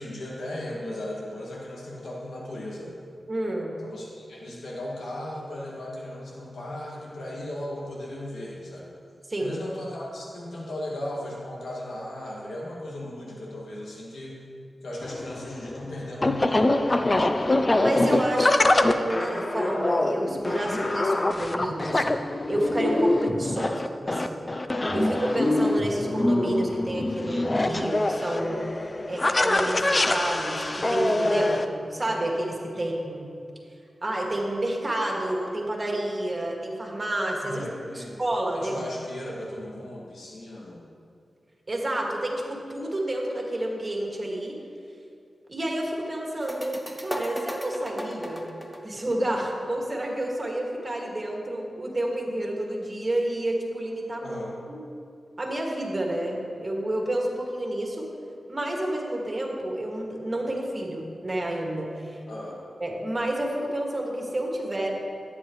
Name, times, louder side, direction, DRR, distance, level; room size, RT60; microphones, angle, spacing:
voice 1, 0.0-3.0 3.8-8.9 9.4-14.4 14.8-17.3 29.0-29.2 32.7-32.8 37.5-38.2 38.5-40.9 54.2-54.5 62.3-62.6, left 1 dB, 85° left, -4 dB, 2.1 m, -37 dB
voice 2, 3.3-3.7 9.3-9.6 17.8-22.2 22.5-24.4 24.9-28.6 29.1-33.3 34.0-37.6 37.9-38.8 41.7-44.6 45.5-48.5 48.8-54.4 54.7-54.8 55.4-58.1 58.5-62.2 62.8-64.9, right 1 dB, 35° right, -1 dB, 2.1 m, -29 dB
sound 1, 15.0-31.6, left 2 dB, 35° left, 0.5 m, -24 dB
sound 2, 46.4-49.9, equal, 10° left, 1.0 m, -36 dB
14.0 x 9.3 x 3.2 m, 2.5 s
cardioid pair, 50°, 0 cm